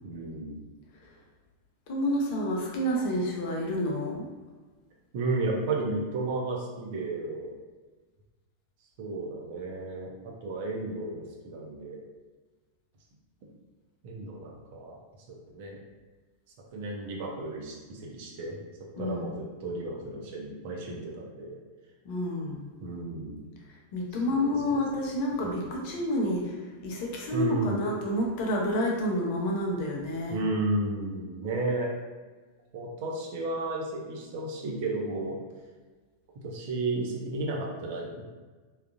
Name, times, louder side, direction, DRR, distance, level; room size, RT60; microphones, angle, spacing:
voice 1, 0.0-0.6 5.1-7.5 9.0-10.1 10.4-12.0 14.0-15.0 15.3-15.8 16.7-18.6 19.0-21.6 22.8-23.5 24.3-24.5 25.4-25.6 27.3-27.9 30.3-31.9 32.7-35.4 36.4-38.2, right 2 dB, 50° right, -2 dB, 0.6 m, -33 dB
voice 2, 1.9-4.3 18.9-19.3 22.0-22.7 23.7-30.4, left 1 dB, 45° left, -1 dB, 0.7 m, -29 dB
3.6 x 2.4 x 2.5 m, 1.3 s
figure-of-eight pair, 90°, 0 cm